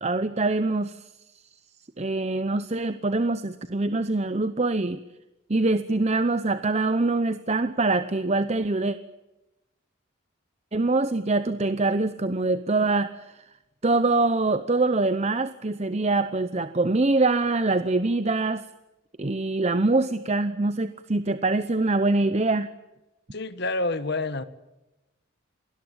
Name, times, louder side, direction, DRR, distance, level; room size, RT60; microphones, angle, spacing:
voice 1, 0.0-1.0 2.0-5.0 5.5-9.0 10.7-13.4 13.8-18.6 19.2-22.7, right 2 dB, 30° right, 12 dB, 0.8 m, -24 dB
voice 2, 23.3-24.4, left 2 dB, 55° left, 13 dB, 1.5 m, -28 dB
28.5 x 20.0 x 8.9 m, 1.0 s
head